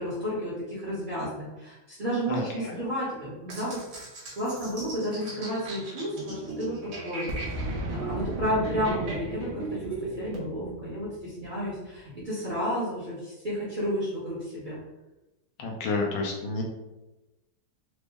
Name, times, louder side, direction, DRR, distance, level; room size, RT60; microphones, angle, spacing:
voice 1, 0.0-4.0 4.4-7.4 7.9-14.8, equal, 40° right, -8 dB, 0.8 m, -32 dB
voice 2, 2.3-2.8 15.6-16.6, left 3 dB, 80° left, 0 dB, 1.4 m, -30 dB
sound 1, 3.5-10.4, right 3 dB, 65° right, 1.4 m, -38 dB
Boom, 7.3-12.0, right 1 dB, 80° right, 1.3 m, -36 dB
4.0 x 2.0 x 3.4 m, 1.0 s
omnidirectional pair, 2.1 m